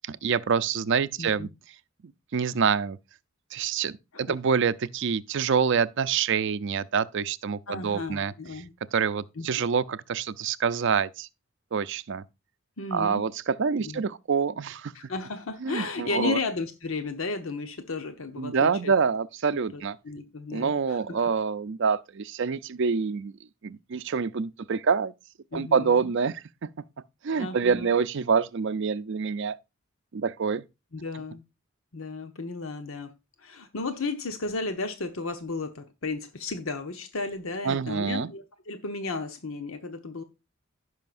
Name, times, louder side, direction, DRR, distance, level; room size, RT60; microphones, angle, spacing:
voice 1, 0.0-1.5 2.3-3.0 3.5-8.3 8.9-11.3 11.7-12.2 12.9-14.9 15.6-16.4 18.4-20.0 20.5-23.3 23.6-25.1 25.5-26.4 27.2-29.5 30.1-30.6 37.6-38.3, right 6 dB, 60° right, 0.5 m, -26 dB
voice 2, 1.2-1.5 4.1-4.3 7.7-8.7 9.4-9.5 12.8-13.2 13.8-14.0 14.9-19.0 19.7-21.0 25.5-26.1 27.4-27.9 30.9-31.4 31.9-33.1 33.4-40.2, left 3 dB, 80° left, 0.9 m, -34 dB
16.0 x 5.6 x 2.5 m
head